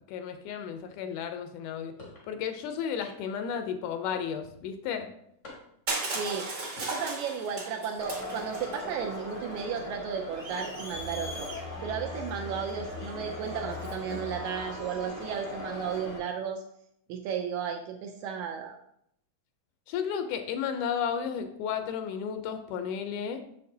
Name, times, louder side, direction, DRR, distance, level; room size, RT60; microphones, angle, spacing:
voice 1, 0.1-1.9 2.3-5.1 19.9-23.4, left 7 dB, 80° left, 7 dB, 2.0 m, -33 dB
sound 1, 2.0-2.3 3.0-3.4 4.1-4.6 5.4-5.9 6.6-6.9, left 2 dB, 60° left, 0.7 m, -48 dB
Crushing, 5.9-8.8, right 3 dB, 50° right, 1.1 m, -35 dB
voice 2, 6.1-11.5 11.8-16.6 17.1-18.8, right 7 dB, 80° right, 3 dB, 1.8 m, -34 dB
Crowd, 8.0-16.2, left 2 dB, 25° left, 0.4 m, -39 dB
6.8 x 6.5 x 2.7 m, 0.72 s
omnidirectional pair, 3.7 m